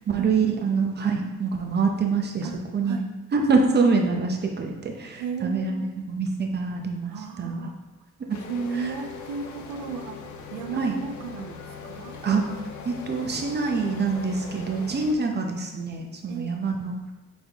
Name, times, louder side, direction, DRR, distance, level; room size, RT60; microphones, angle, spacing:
voice 1, 0.0-3.0 3.3-7.7 8.3-8.4 8.8-8.9 10.8-10.9 12.2-12.4 12.8-17.0, right 4 dB, 35° right, 2 dB, 0.8 m, -25 dB
voice 2, 5.2-6.1 7.0-7.8 8.5-10.2 10.5-12.2 16.2-16.6, right 5 dB, 85° right, 4 dB, 0.5 m, -35 dB
sound 1, 8.3-15.2, left 5 dB, 70° left, 0.6 m, -40 dB
4.2 x 3.5 x 3.5 m, 1.1 s
cardioid pair, 90°, 30 cm